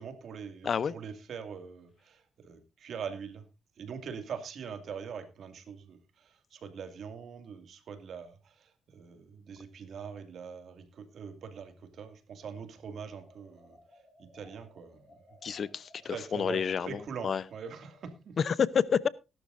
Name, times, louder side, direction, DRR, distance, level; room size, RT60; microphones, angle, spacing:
voice 1, 0.0-3.5 3.8-13.8 14.2-15.1 16.0-18.4, right 6 dB, 60° right, 2.3 m, -43 dB
voice 2, 0.6-0.9 15.4-17.4 18.4-19.1, left 7 dB, 50° left, 0.7 m, -29 dB
sound 1, 13.2-18.1, left 1 dB, 20° left, 5.6 m, -59 dB
17.5 x 12.0 x 2.6 m
cardioid pair, 90°, 0 cm